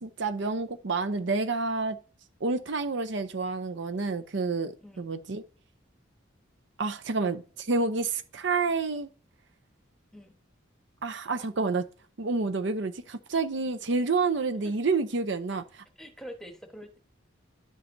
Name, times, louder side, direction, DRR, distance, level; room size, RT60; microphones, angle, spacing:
voice 1, 0.0-2.0 2.4-5.4 6.8-9.1 11.0-11.8 12.2-15.8, right 3 dB, 65° right, 0.6 m, -29 dB
voice 2, 16.0-17.0, equal, 5° left, 1.2 m, -45 dB
10.5 x 7.3 x 2.7 m
head